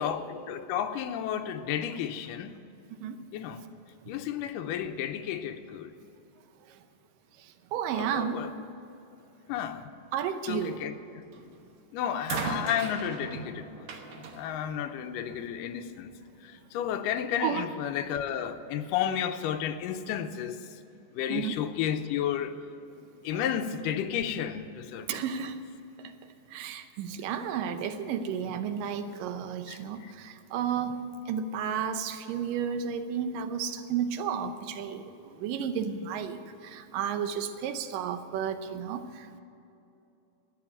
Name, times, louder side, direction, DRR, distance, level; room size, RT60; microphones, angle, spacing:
voice 1, 0.0-2.6 3.3-3.6 4.1-5.9 7.9-8.5 9.5-9.9 10.5-11.2 11.9-13.9 14.3-16.1 16.4-20.6 21.1-22.6 23.2-25.2 29.7-30.1, left 9 dB, 85° left, 9 dB, 2.3 m, -32 dB
voice 2, 2.9-3.3 6.7-6.8 7.4-8.5 10.1-10.8 17.4-17.7 21.3-21.6 23.0-23.4 25.1-25.6 26.0-26.1 26.5-39.4, right 7 dB, 90° right, 9 dB, 2.5 m, -33 dB
sound 1, 11.3-11.7 12.3-15.5 16.5-16.6, right 5 dB, 65° right, 2.3 m, -38 dB
12.0 x 9.3 x 10.0 m, 2.8 s
omnidirectional pair, 3.8 m